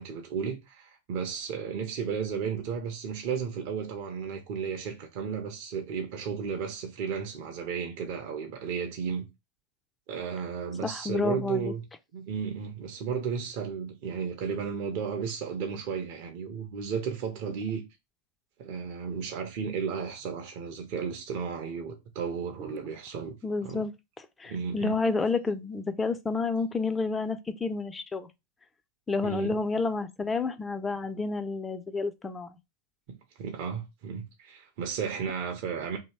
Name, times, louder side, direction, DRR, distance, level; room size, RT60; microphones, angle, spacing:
voice 1, 0.0-9.3 10.1-11.8 12.1-17.9 18.6-23.4 23.6-23.8 24.5-25.0 29.2-29.6 33.1-36.0, right 6 dB, 45° right, 0.6 m, -34 dB
voice 2, 10.8-11.7 22.6-22.8 23.4-23.9 24.4-28.3 29.1-32.6, left 4 dB, 15° left, 0.4 m, -30 dB
2.8 x 2.8 x 4.3 m
figure-of-eight pair, 90°, 0 cm